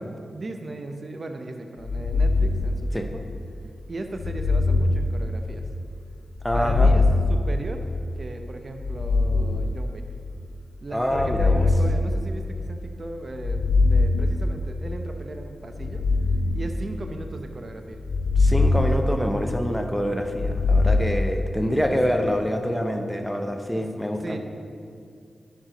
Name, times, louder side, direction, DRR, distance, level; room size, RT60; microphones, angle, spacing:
voice 1, 0.0-3.2 3.9-5.6 6.5-7.9 8.2-10.1 10.8-16.0 16.5-18.0 21.9-22.0 23.7-23.9 24.2-24.4, right 2 dB, 50° right, 5 dB, 0.7 m, -36 dB
sound 1, 1.8-3.4 4.2-5.9 6.4-8.2 8.8-10.3 11.0-12.8 13.3-15.0 15.7-17.4 18.0-19.8 20.3-21.2, left 3 dB, 75° left, 0.4 m, -23 dB
voice 2, 6.4-6.9 10.9-11.7 18.4-24.4, equal, 5° left, 4 dB, 0.9 m, -26 dB
10.5 x 4.7 x 5.0 m, 2.3 s
cardioid pair, 50°, 0 cm